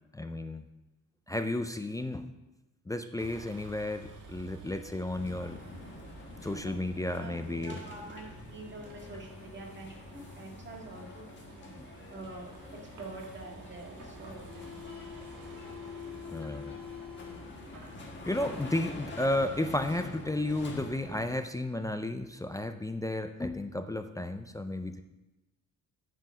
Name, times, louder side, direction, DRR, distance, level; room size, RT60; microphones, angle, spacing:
voice 1, 0.1-0.7 1.3-2.3 2.9-5.6 6.4-7.8 11.8-11.9 16.3-16.8 18.3-25.0, left 1 dB, 10° left, 8 dB, 0.3 m, -33 dB
Vehicle, 3.2-20.1, right 3 dB, 65° right, 1.6 m, -52 dB
sound 1, 5.1-21.4, left 3 dB, 35° left, 1.5 m, -46 dB
voice 2, 6.6-11.8 12.1-12.5 13.0-14.4, right 2 dB, 35° right, 0 dB, 1.8 m, -46 dB
9.3 x 5.1 x 5.6 m, 0.99 s
wide cardioid pair, 140°, 33 cm